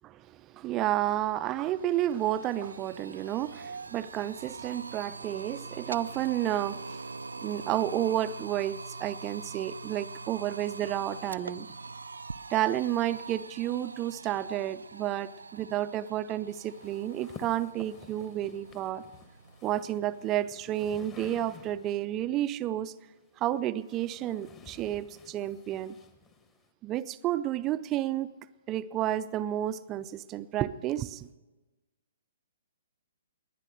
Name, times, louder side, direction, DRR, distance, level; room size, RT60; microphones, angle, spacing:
voice 1, 0.0-7.0 7.4-11.7 12.5-19.0 19.6-22.9 23.4-26.0 26.8-28.3 28.7-31.3, right 12 dB, 25° right, 0.5 m, -31 dB
sound 1, 0.9-1.0 1.3-20.3, right 3 dB, 75° right, 0.4 m, -44 dB
sound 2, 16.5-22.1 23.1-26.7, left 5 dB, 20° left, 1.3 m, -52 dB
20.0 x 9.9 x 6.5 m
figure-of-eight pair, 125°, 0 cm